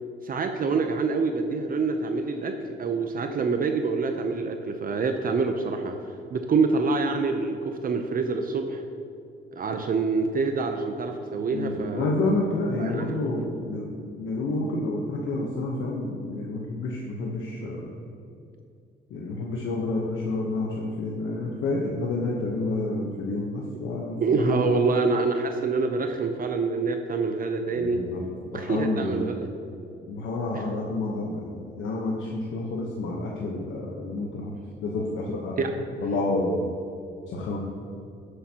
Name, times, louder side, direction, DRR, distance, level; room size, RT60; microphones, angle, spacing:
voice 1, 0.2-6.0 6.3-8.8 9.5-12.1 12.8-13.1 13.4-13.5 24.2-28.0 28.5-29.5 30.5-30.6 35.6-35.7, right 4 dB, 45° right, 6 dB, 0.7 m, -26 dB
voice 2, 11.5-17.9 19.1-24.9 27.8-28.2 28.5-29.3 30.0-34.5 34.8-35.7 36.0-36.7 37.3-37.6, left 2 dB, 75° left, -2 dB, 1.1 m, -29 dB
12.0 x 8.0 x 2.9 m, 2.6 s
cardioid pair, 90°, 20 cm